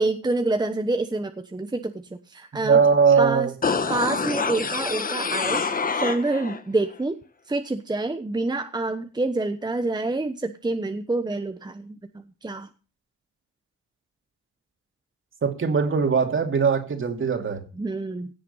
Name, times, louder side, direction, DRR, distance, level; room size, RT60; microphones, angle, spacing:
voice 1, 0.0-2.0 2.3-2.8 3.2-3.5 3.9-7.1 7.5-12.0 12.4-12.7 17.8-18.3, right 2 dB, 15° right, 7 dB, 1.1 m, -27 dB
voice 2, 2.6-3.5 15.4-17.6, right 5 dB, 40° right, 6 dB, 2.7 m, -20 dB
sound 1, 3.6-6.6 6.9-7.0, left 5 dB, 30° left, 1.3 m, -26 dB
17.0 x 7.7 x 5.6 m, 0.35 s
cardioid pair, 90°, 30 cm